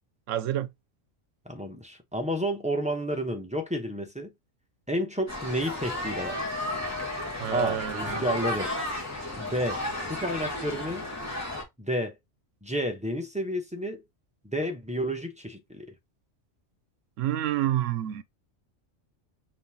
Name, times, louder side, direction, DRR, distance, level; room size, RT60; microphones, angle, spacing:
voice 1, 0.3-0.7 7.4-8.2 17.2-18.2, right 12 dB, 85° right, 1.0 m, -28 dB
voice 2, 1.5-4.3 4.9-6.5 7.5-8.7 9.4-11.0 11.8-12.2 12.6-14.0 14.4-15.9, equal, 5° right, 0.7 m, -31 dB
sound 1, 5.3-11.6, left 1 dB, 15° left, 1.5 m, -33 dB
5.2 x 3.0 x 2.8 m
omnidirectional pair, 1.3 m